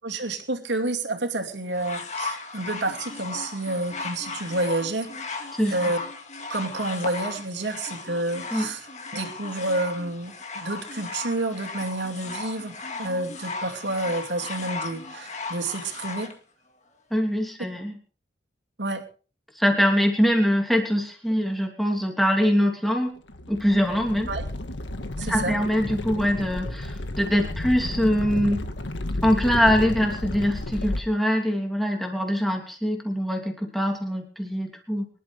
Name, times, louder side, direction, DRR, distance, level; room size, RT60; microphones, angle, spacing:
voice 1, 0.0-6.0 6.5-8.8 9.1-16.3 18.8-19.0 24.3-24.4 25.2-25.5, right 2 dB, 75° right, 3 dB, 2.6 m, -29 dB
sound 1, 1.7-16.3 17.2-17.3, left 3 dB, 40° left, 2.0 m, -36 dB
voice 2, 17.1-18.0 19.6-23.1 23.5-24.3 25.2-28.6 29.2-35.1, equal, ahead, 1 dB, 2.8 m, -23 dB
sound 2, 23.3-31.0, left 1 dB, 85° left, 1.7 m, -32 dB
24.5 x 12.0 x 3.4 m, 0.38 s
head